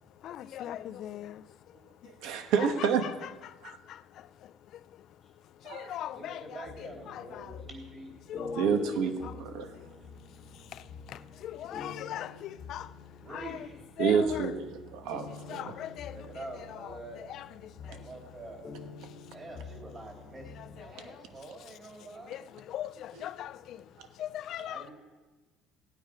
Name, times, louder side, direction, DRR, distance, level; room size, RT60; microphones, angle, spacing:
voice 1, 0.0-1.8 2.0-2.2 2.8-3.1 3.4-5.1 5.6-7.7 8.3-8.7 9.2-9.9 10.5-13.7 14.0-14.6 15.1-18.1 19.0-19.4 20.5-24.9, left 12 dB, 50° left, 0.4 m, -42 dB
voice 2, 2.2-3.0 3.6-3.8 5.6-6.0 8.6-9.7 14.0-15.7 23.2-23.3, right 6 dB, 70° right, 1.3 m, -29 dB
voice 3, 6.1-8.1 13.2-13.8 16.1-17.2 17.9-18.7 19.3-22.4 24.7-24.9, right 2 dB, 25° right, 3.5 m, -46 dB
sound 1, 6.7-20.8, left 4 dB, 20° left, 1.2 m, -47 dB
17.5 x 9.0 x 5.1 m
cardioid pair, 150°, 0 cm